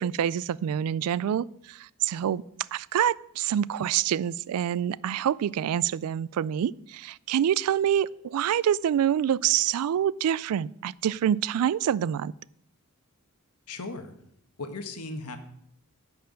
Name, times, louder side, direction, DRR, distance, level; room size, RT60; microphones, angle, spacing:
voice 1, 0.0-2.4 2.7-12.3, right 9 dB, 70° right, 0.3 m, -26 dB
voice 2, 13.7-14.1 14.6-15.4, left 3 dB, 90° left, 1.2 m, -36 dB
10.5 x 4.5 x 7.6 m
head